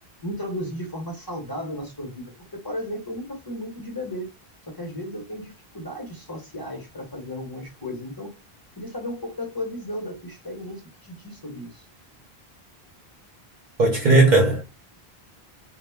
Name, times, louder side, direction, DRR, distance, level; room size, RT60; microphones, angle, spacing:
voice 1, 0.2-4.3 4.7-8.3 8.8-11.8, left 1 dB, 25° left, 0.7 m, -34 dB
voice 2, 13.8-14.6, right 2 dB, 55° right, 0.6 m, -16 dB
2.1 x 2.0 x 3.2 m
omnidirectional pair, 1.0 m